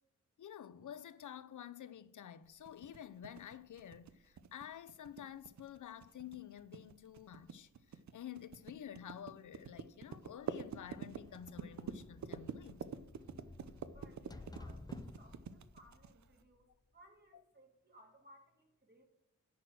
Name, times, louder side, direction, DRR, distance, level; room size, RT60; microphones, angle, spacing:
voice 1, 0.4-12.8 17.3-17.4, left 10 dB, 75° left, 0.6 m, -50 dB
sound 1, 2.6-16.4, right 6 dB, 65° right, 0.7 m, -47 dB
sound 2, 10.2-16.9, left 2 dB, 15° left, 0.4 m, -55 dB
voice 2, 13.9-16.7 16.9-19.1, right 1 dB, 30° right, 2.6 m, -63 dB
10.0 x 4.4 x 7.8 m
wide cardioid pair, 95°, 31 cm